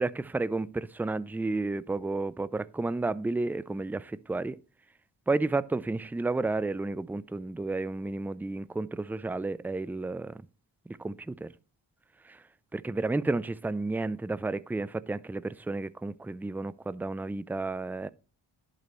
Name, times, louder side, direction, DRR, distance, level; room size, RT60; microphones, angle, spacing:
voice 1, 0.0-4.6 5.3-10.4 10.9-11.5 12.3-12.4 12.7-18.1, right 3 dB, 5° right, 0.4 m, -32 dB
11.0 x 5.5 x 3.0 m
cardioid pair, 45°, 46 cm